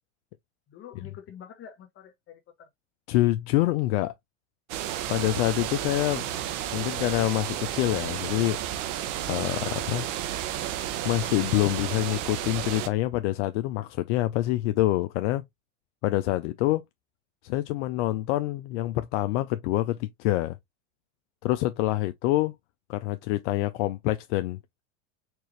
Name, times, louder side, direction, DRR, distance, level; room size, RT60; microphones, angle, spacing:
voice 1, 0.7-2.7 6.0-6.3, left 8 dB, 30° left, 1.1 m, -47 dB
voice 2, 3.1-4.1 5.1-6.2 6.7-8.6 9.3-10.1 11.0-15.4 16.0-16.8 17.4-20.6 21.4-22.5 22.9-24.6, left 16 dB, 65° left, 0.5 m, -26 dB
sound 1, 4.7-12.9, right 11 dB, 70° right, 0.9 m, -32 dB
4.6 x 2.5 x 3.1 m
supercardioid pair, 120°, 38 cm